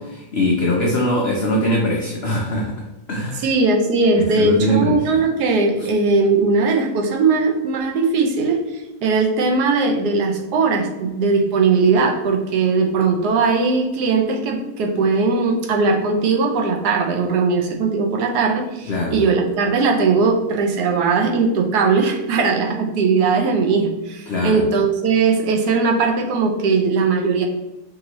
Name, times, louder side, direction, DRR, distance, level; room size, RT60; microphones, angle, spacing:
voice 1, 0.0-3.5 4.2-4.9 5.8-5.9 18.9-19.2 24.3-24.6, left 1 dB, 85° left, -1 dB, 0.5 m, -22 dB
voice 2, 3.3-27.5, right 4 dB, 70° right, 2 dB, 1.2 m, -19 dB
5.2 x 2.7 x 3.0 m, 0.98 s
omnidirectional pair, 1.9 m